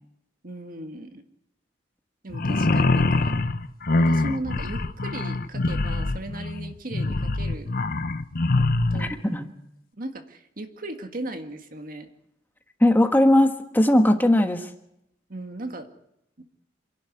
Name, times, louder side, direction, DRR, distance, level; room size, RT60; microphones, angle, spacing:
voice 1, 0.4-1.2 2.2-3.5 4.0-7.7 8.9-9.2 10.0-12.1 15.3-15.9 16.4-16.5, right 1 dB, 50° right, 6 dB, 1.9 m, -37 dB
sound 1, 2.3-9.1, left 2 dB, 50° left, 0.9 m, -24 dB
voice 2, 8.9-9.5 12.8-14.7, left 1 dB, 10° left, 6 dB, 1.4 m, -19 dB
27.0 x 11.5 x 9.6 m, 0.81 s
head